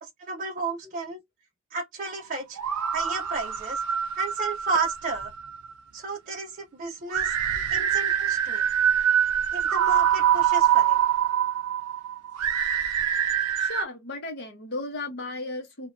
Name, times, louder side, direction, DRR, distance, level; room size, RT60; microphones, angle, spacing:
voice 1, 0.0-1.2 1.7-2.6 2.9-3.8 4.2-5.3 5.9-7.3 7.7-8.6 9.5-11.0, right 4 dB, 35° right, 0.5 m, -32 dB
sound 1, 2.6-5.7 7.1-13.8, right 9 dB, 90° right, 0.5 m, -24 dB
voice 2, 13.5-15.9, left 2 dB, 50° left, 0.8 m, -35 dB
2.5 x 2.2 x 2.9 m
head